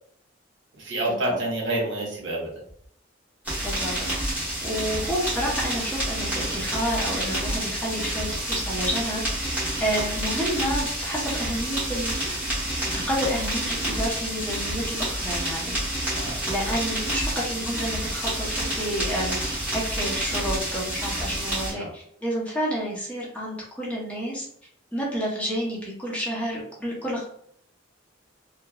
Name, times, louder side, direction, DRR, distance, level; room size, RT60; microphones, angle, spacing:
voice 1, 0.7-2.5 16.2-16.4 16.6-16.7 21.7-21.9, right 1 dB, 80° right, -2 dB, 1.0 m, -28 dB
sound 1, 3.4-21.7, right 1 dB, 10° right, 1.1 m, -29 dB
voice 2, 3.6-4.1 4.6-9.2 9.5-12.3 12.6-15.8 16.5-18.5 18.7-24.5 24.9-27.2, equal, 5° left, -6 dB, 0.8 m, -30 dB
3.0 x 2.1 x 2.3 m, 0.66 s
head